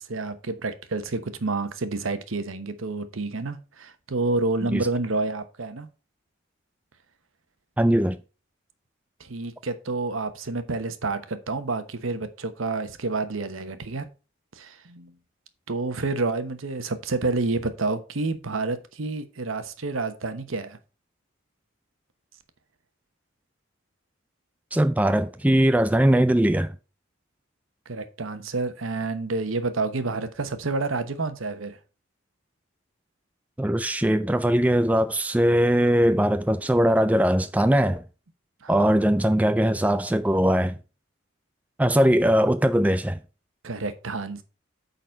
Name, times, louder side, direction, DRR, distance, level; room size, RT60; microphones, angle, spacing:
voice 1, 0.0-5.9 9.2-14.1 14.5-15.1 15.7-20.8 27.9-31.8 38.6-38.9 43.6-44.4, right 3 dB, 80° right, 1.0 m, -29 dB
voice 2, 7.8-8.2 24.7-26.7 33.6-38.0 38.7-40.8 41.8-43.2, right 1 dB, 5° right, 0.3 m, -20 dB
8.9 x 4.0 x 5.2 m
head